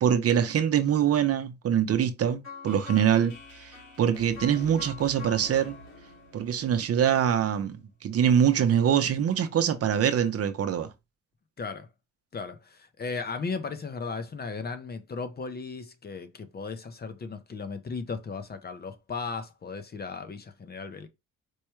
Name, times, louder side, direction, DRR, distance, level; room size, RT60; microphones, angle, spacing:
voice 1, 0.0-3.3 3.6-3.7 4.0-5.8 6.3-10.9, right 9 dB, 50° right, 0.7 m, -24 dB
sound 1, 2.4-7.4, left 4 dB, 65° left, 1.7 m, -45 dB
voice 2, 11.6-11.9 12.3-21.1, left 4 dB, 30° left, 0.6 m, -36 dB
4.6 x 2.2 x 3.1 m
cardioid pair, 90°, 30 cm